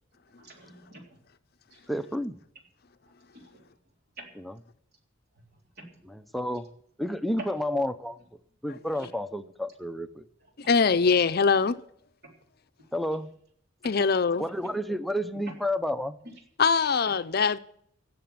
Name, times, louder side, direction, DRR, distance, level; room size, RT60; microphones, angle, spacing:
voice 1, 0.3-1.2 1.7-1.8 3.3-3.8 4.2-4.3 5.3-6.4 7.4-7.5 9.0-9.1 10.4-10.7 12.2-12.4 12.8-12.9 13.8-13.9 15.5-15.6 16.2-16.3, right 2 dB, 55° right, 3.6 m, -47 dB
voice 2, 1.9-2.3 6.3-6.7 7.0-8.2 8.6-10.2 12.9-13.3 14.4-16.1, left 1 dB, ahead, 0.6 m, -30 dB
voice 3, 10.7-11.8 13.8-14.4 16.6-17.6, left 5 dB, 50° left, 0.6 m, -22 dB
16.5 x 7.0 x 7.4 m
head